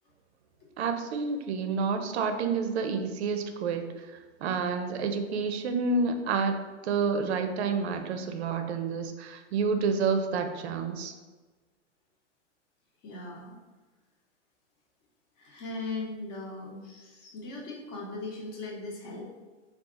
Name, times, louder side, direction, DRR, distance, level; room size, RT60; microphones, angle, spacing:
voice 1, 0.8-6.6 6.8-11.1, right 5 dB, 60° right, 7 dB, 0.5 m, -29 dB
voice 2, 13.0-13.5 15.4-19.3, left 2 dB, 40° left, -2 dB, 1.0 m, -38 dB
2.7 x 2.4 x 3.5 m, 1.3 s
hypercardioid pair, 125°, 37 cm